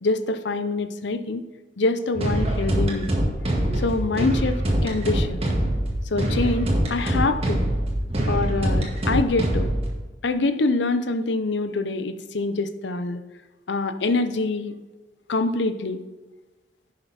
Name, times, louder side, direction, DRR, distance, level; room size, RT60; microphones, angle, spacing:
voice 1, 0.0-1.4 1.8-3.1 3.8-5.4 6.1-7.6 8.3-9.7 10.2-13.2 13.7-14.7 15.3-16.0, left 3 dB, 75° left, 10 dB, 0.7 m, -25 dB
sound 1, 2.1-9.9, right 1 dB, 35° right, 1.9 m, -24 dB
10.5 x 6.7 x 4.3 m, 1.2 s
head